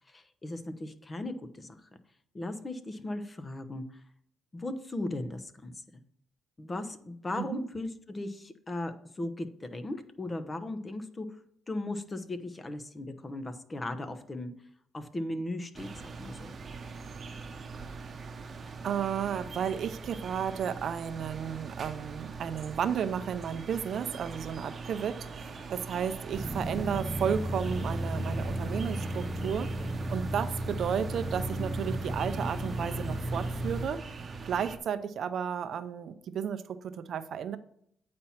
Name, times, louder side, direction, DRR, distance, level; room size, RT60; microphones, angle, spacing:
voice 1, 0.1-1.9 2.3-4.0 4.5-6.0 6.6-11.3 11.7-14.5 14.9-16.5, left 1 dB, 25° left, 9 dB, 0.9 m, -37 dB
sound 1, 15.7-34.8, right 4 dB, 40° right, 0.9 m, -43 dB
voice 2, 18.8-29.7 30.1-34.0 34.4-37.6, right 8 dB, 65° right, 10 dB, 0.6 m, -33 dB
sound 2, 26.3-33.9, right 1 dB, 10° right, 0.7 m, -34 dB
8.9 x 4.3 x 5.8 m, 0.67 s
cardioid pair, 90°, 0 cm